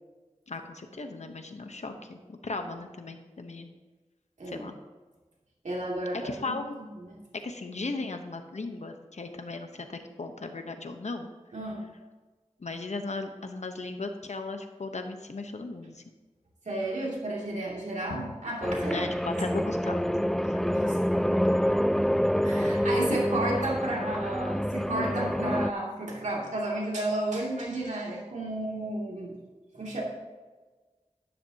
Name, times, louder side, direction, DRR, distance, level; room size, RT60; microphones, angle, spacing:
voice 1, 0.5-3.7 4.5-4.7 6.1-6.8 7.4-11.3 12.6-16.0 18.9-20.1 20.5-20.6 23.1-23.2, left 3 dB, 70° left, 6 dB, 1.0 m, -37 dB
voice 2, 5.6-6.6 7.0-7.2 11.5-11.8 16.6-19.0 20.7-21.0 22.4-29.3 29.7-30.0, right 1 dB, 90° right, -4 dB, 2.7 m, -32 dB
sound 1, 18.6-25.7, equal, 5° left, 0.3 m, -27 dB
11.5 x 11.0 x 2.9 m, 1.3 s
wide cardioid pair, 60°, 12 cm